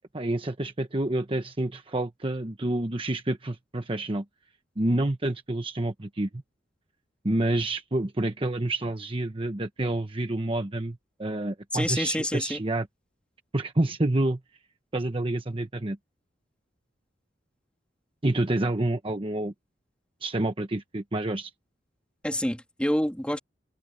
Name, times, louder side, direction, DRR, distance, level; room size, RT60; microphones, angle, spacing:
voice 1, 0.1-4.2 4.8-6.3 7.2-12.9 13.5-14.4 14.9-16.0 18.2-19.5 20.2-21.5, right 1 dB, 30° right, 1.1 m, -28 dB
voice 2, 11.7-12.6 22.2-23.4, left 1 dB, 5° left, 3.1 m, -27 dB
head